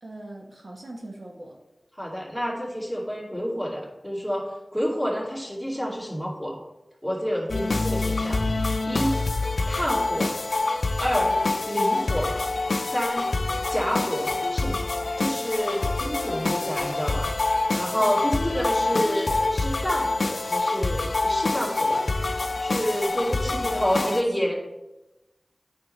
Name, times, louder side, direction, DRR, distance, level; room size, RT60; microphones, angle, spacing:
voice 1, 0.0-1.6 18.0-18.2 23.3-24.6, right 1 dB, 65° right, -1 dB, 1.1 m, -38 dB
voice 2, 1.9-6.6 7.0-9.2 9.7-10.4 11.0-11.4 11.7-12.4 12.8-13.3 13.7-14.8 15.2-22.1 22.6-24.6, equal, 5° right, -4 dB, 2.3 m, -29 dB
sound 1, 7.5-24.2, left 2 dB, 80° left, 0.4 m, -26 dB
9.2 x 5.5 x 3.2 m, 1.0 s
wide cardioid pair, 55°, 0 cm